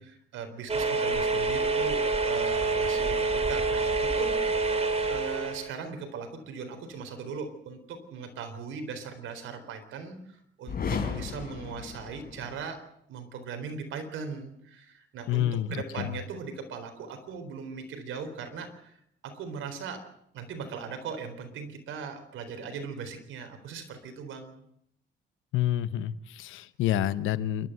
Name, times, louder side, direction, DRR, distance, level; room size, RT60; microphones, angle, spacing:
voice 1, 0.0-12.8 13.1-20.1 20.3-24.6, right 5 dB, 80° right, 7 dB, 3.9 m, -39 dB
sound 1, 0.7-5.7, right 3 dB, 30° right, 3.0 m, -27 dB
sound 2, 10.6-12.7, left 6 dB, 50° left, 4.4 m, -34 dB
voice 2, 15.3-16.2 25.5-27.7, left 11 dB, 85° left, 15 dB, 1.0 m, -28 dB
27.5 x 12.5 x 7.9 m, 0.74 s
cardioid pair, 90°, 20 cm